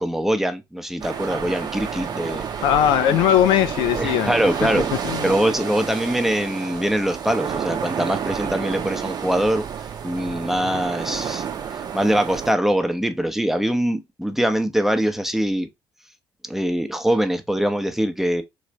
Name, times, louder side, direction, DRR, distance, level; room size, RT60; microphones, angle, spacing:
voice 1, 0.0-2.4 4.0-4.9 5.2-9.6 10.0-11.5 11.7-15.7 16.5-18.4, equal, 5° right, 0.7 m, -23 dB
sound 1, 1.0-12.5, right 8 dB, 45° right, 0.7 m, -29 dB
voice 2, 2.6-4.3 5.0-5.3, left 11 dB, 65° left, 0.3 m, -19 dB
3.2 x 2.5 x 3.1 m
hypercardioid pair, 50°, 9 cm